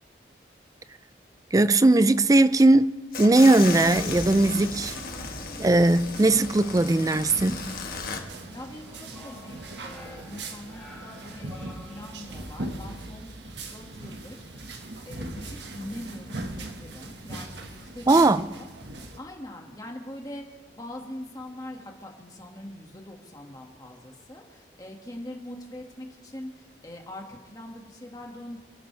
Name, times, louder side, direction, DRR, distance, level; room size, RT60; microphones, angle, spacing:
voice 1, 1.5-4.9 5.6-7.8 18.1-18.5, right 2 dB, 20° right, 0.4 m, -19 dB
sound 1, 3.1-8.2, left 5 dB, 55° left, 1.5 m, -36 dB
sound 2, 4.0-19.2, right 2 dB, 80° right, 1.5 m, -40 dB
sound 3, 8.3-12.7, left 1 dB, ahead, 4.1 m, -50 dB
voice 2, 8.5-13.3 13.7-14.7 15.1-18.7 19.2-28.6, left 1 dB, 20° left, 1.9 m, -42 dB
28.5 x 11.5 x 3.3 m
head